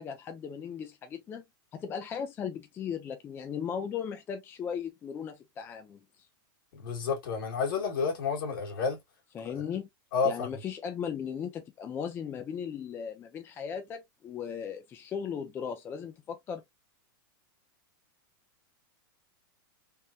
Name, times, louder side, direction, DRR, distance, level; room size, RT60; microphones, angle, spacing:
voice 1, 0.0-1.4 1.7-6.0 9.3-9.9 10.2-16.6, left 7 dB, 20° left, 0.4 m, -37 dB
voice 2, 6.7-9.0 10.1-10.6, left 5 dB, 70° left, 1.8 m, -30 dB
3.5 x 2.1 x 2.6 m
supercardioid pair, 145°, 12 cm